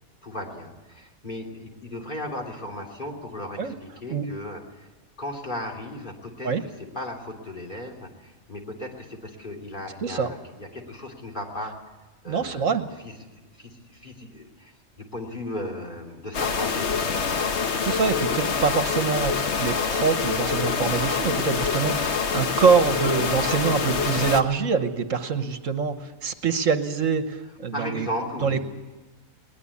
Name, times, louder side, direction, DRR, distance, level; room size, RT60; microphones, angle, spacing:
voice 1, 0.2-4.9 5.2-11.8 12.2-13.1 13.4-16.9 27.7-28.6, left 1 dB, 35° left, 1 dB, 3.3 m, -36 dB
voice 2, 12.3-12.9 17.8-28.1 28.4-28.6, right 5 dB, 65° right, 9 dB, 1.5 m, -24 dB
sound 1, 16.3-24.4, left 5 dB, 55° left, 1.4 m, -25 dB
21.5 x 19.5 x 8.5 m, 1.2 s
omnidirectional pair, 1.4 m